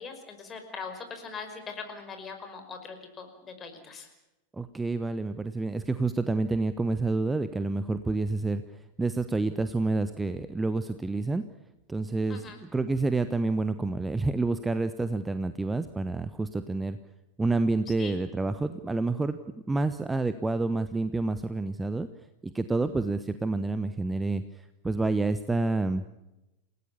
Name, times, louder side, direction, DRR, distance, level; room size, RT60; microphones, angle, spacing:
voice 1, 0.0-4.1 12.3-12.6 18.0-18.2, left 5 dB, 20° left, 6 dB, 5.4 m, -41 dB
voice 2, 4.5-11.4 11.9-17.0 17.4-19.4 19.7-22.1 22.4-26.0, right 3 dB, 10° right, 11 dB, 1.0 m, -28 dB
29.5 x 18.5 x 7.1 m, 0.95 s
figure-of-eight pair, 90°, 0 cm